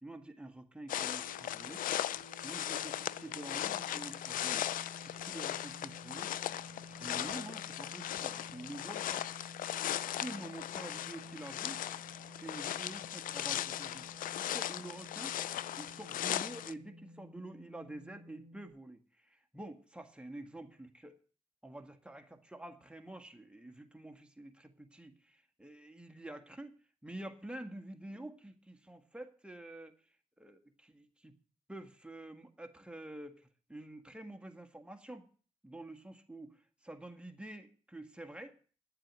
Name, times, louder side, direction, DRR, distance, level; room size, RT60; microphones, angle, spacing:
voice 1, 0.0-1.8 2.4-4.7 5.1-6.3 6.9-9.3 10.1-11.8 12.4-15.4 15.8-21.2 21.6-26.8 27.0-30.0 30.4-31.4 31.7-35.3 35.6-38.6, right 1 dB, 5° right, 6 dB, 1.8 m, -48 dB
sound 1, 0.9-16.7, left 12 dB, 80° left, 0.4 m, -38 dB
sound 2, 1.2-18.7, left 1 dB, 60° left, 4.1 m, -54 dB
10.5 x 7.6 x 7.5 m, 0.42 s
supercardioid pair, 55°, 14 cm